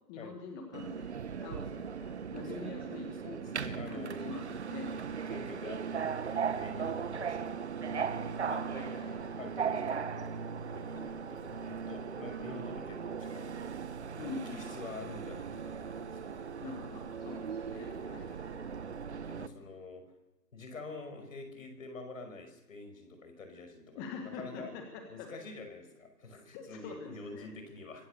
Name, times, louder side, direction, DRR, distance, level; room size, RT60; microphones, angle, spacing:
voice 1, 0.1-3.1 3.9-4.4 4.7-4.9 8.7-9.2 14.2-14.8 16.6-18.8 23.9-25.3 26.5-27.5, left 4 dB, 15° left, 3 dB, 1.7 m, -45 dB
Subway metro underground, 0.7-19.5, right 6 dB, 40° right, 1.1 m, -38 dB
voice 2, 3.2-4.2 4.9-8.1 8.4-8.7 9.4-13.6 14.2-16.5 19.2-20.0 20.5-24.7 25.1-28.1, left 3 dB, 55° left, 6 dB, 5.6 m, -47 dB
24.5 x 15.5 x 6.9 m, 1.0 s
figure-of-eight pair, 150°, 49 cm